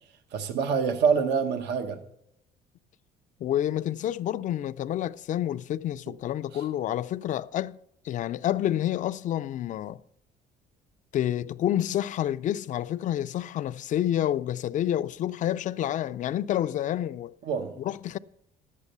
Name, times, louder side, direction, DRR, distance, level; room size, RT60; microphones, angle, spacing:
voice 1, 0.3-2.0 6.5-6.6 17.4-17.7, right 6 dB, 80° right, 1.0 m, -26 dB
voice 2, 3.4-7.8 8.0-10.0 11.1-17.3 17.8-18.2, left 11 dB, 50° left, 0.4 m, -28 dB
11.5 x 8.4 x 6.6 m
cardioid pair, 110°, 17 cm